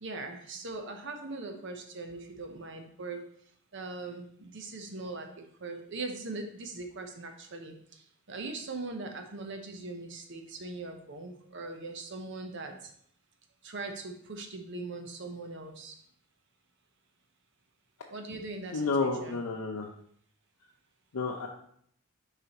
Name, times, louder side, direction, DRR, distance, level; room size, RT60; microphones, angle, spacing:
voice 1, 0.0-3.3 3.7-12.9 13.6-15.9 18.1-19.4, right 3 dB, 55° right, 4 dB, 0.8 m, -41 dB
voice 2, 18.7-19.9 21.1-21.5, left 3 dB, 85° left, 0 dB, 0.6 m, -30 dB
6.7 x 4.9 x 2.9 m, 0.65 s
head